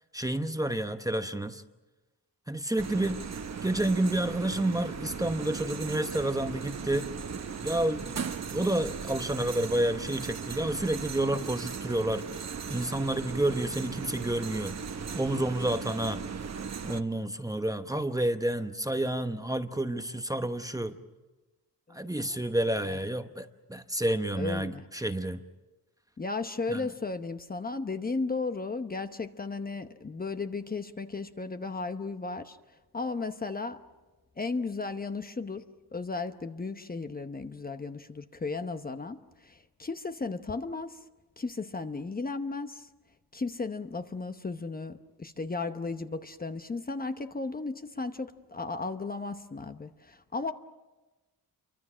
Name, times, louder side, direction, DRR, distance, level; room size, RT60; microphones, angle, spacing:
voice 1, 0.1-1.6 2.5-3.2 3.6-7.1 7.6-12.2 12.7-14.8 15.1-16.2 16.8-21.0 21.9-25.4 26.7-26.9, right 1 dB, 10° right, 8 dB, 1.0 m, -30 dB
sound 1, 2.8-17.0, right 6 dB, 45° right, 1.2 m, -37 dB
voice 2, 21.9-22.4 22.8-23.0 24.4-24.9 26.2-32.6 32.9-33.8 34.4-35.6 35.9-41.0 41.4-42.9 43.3-50.5, left 3 dB, 25° left, 8 dB, 0.9 m, -35 dB
28.5 x 24.0 x 6.2 m, 1.1 s
cardioid pair, 110°, 37 cm